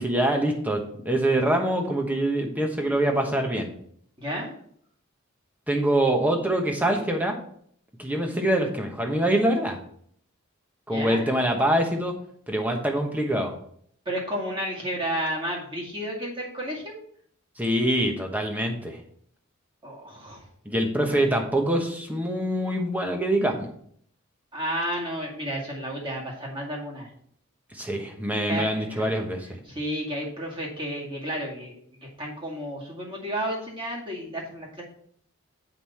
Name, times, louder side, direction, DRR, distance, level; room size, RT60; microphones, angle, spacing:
voice 1, 0.0-3.7 5.7-7.4 8.0-9.8 10.9-12.1 12.5-13.6 17.6-19.0 20.6-23.7 27.7-29.6, right 1 dB, 10° right, 2 dB, 1.1 m, -24 dB
voice 2, 4.2-4.5 10.9-11.3 14.1-17.0 19.8-20.4 24.5-27.1 28.5-29.1 29.7-34.8, equal, 25° right, -2 dB, 2.2 m, -32 dB
8.0 x 5.4 x 4.3 m, 0.63 s
head